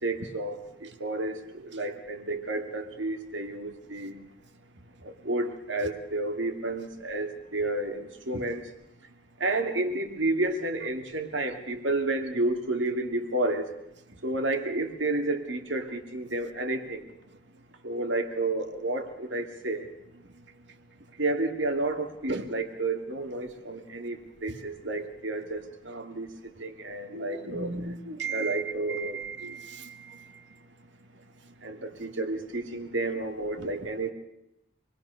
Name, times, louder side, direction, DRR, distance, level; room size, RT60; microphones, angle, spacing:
voice 1, 0.0-4.1 5.0-8.6 9.4-13.7 14.2-17.1 17.8-19.9 21.2-26.3 26.6-27.7 28.3-29.2 31.6-34.1, right 2 dB, 90° right, 6 dB, 2.7 m, -31 dB
voice 2, 27.1-28.6 28.9-29.9, right 4 dB, 70° right, 9 dB, 1.9 m, -35 dB
27.5 x 21.0 x 6.5 m, 0.84 s
head